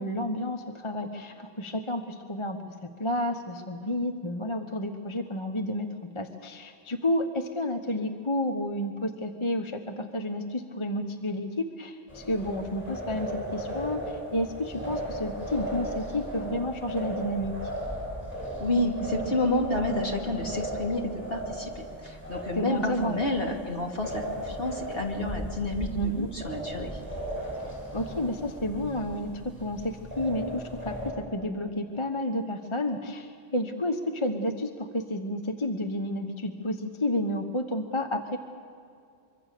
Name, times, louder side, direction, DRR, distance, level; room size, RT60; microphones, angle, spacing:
voice 1, 0.0-5.9 6.1-17.5 22.6-23.2 25.9-26.3 27.9-29.3 29.6-30.9 31.3-38.4, left 1 dB, 25° left, 5 dB, 1.0 m, -31 dB
sound 1, 12.1-31.1, right 1 dB, 10° left, 7.9 m, -36 dB
voice 2, 18.6-21.0 21.3-26.9, left 1 dB, 50° left, 0 dB, 2.8 m, -29 dB
24.5 x 24.0 x 6.7 m, 2.4 s
omnidirectional pair, 1.2 m